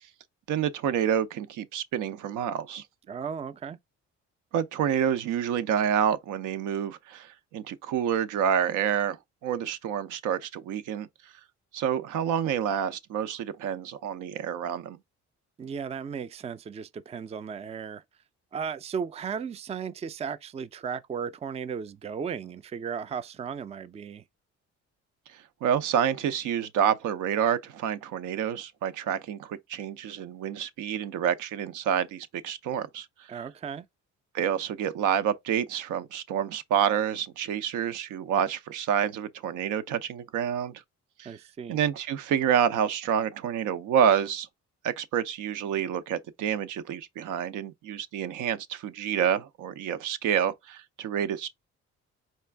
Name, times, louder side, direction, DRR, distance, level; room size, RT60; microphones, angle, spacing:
voice 1, 0.5-2.8 4.5-11.1 11.7-15.0 25.6-33.1 34.3-40.8 41.2-41.3 41.7-44.5 44.8-51.5, right 8 dB, 85° right, 0.6 m, -28 dB
voice 2, 3.1-3.8 15.6-18.0 18.5-24.2 33.3-33.9 41.3-41.8, right 6 dB, 20° right, 0.3 m, -35 dB
4.4 x 2.4 x 3.3 m
cardioid pair, 90°, 30 cm